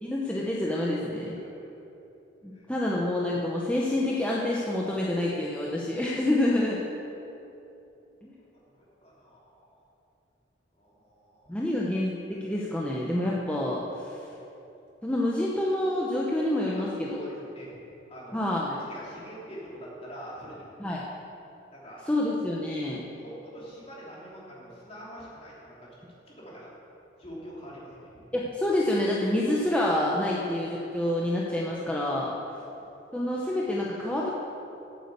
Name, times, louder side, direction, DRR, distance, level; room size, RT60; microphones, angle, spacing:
voice 1, 0.0-1.4 2.4-6.8 8.2-8.3 11.5-14.2 15.0-17.2 18.3-18.8 20.8-21.0 22.1-23.0 28.3-32.3 33.1-34.3, left 1 dB, 5° left, -5 dB, 0.9 m, -27 dB
voice 2, 8.5-9.8 10.7-11.8 17.1-17.7 18.1-18.4 18.8-20.7 21.7-22.0 23.2-25.9 26.3-26.7 27.2-28.2, equal, 35° left, -6 dB, 3.2 m, -46 dB
8.6 x 8.5 x 8.0 m, 2.9 s
head